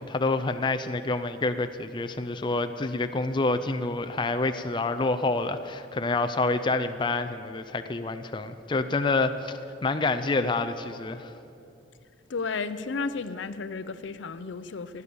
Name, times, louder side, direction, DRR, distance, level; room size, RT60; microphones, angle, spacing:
voice 1, 0.0-11.3, left 3 dB, 25° left, 9 dB, 0.5 m, -28 dB
voice 2, 12.3-15.0, left 4 dB, 75° left, 13 dB, 0.6 m, -33 dB
16.5 x 9.6 x 7.0 m, 2.7 s
head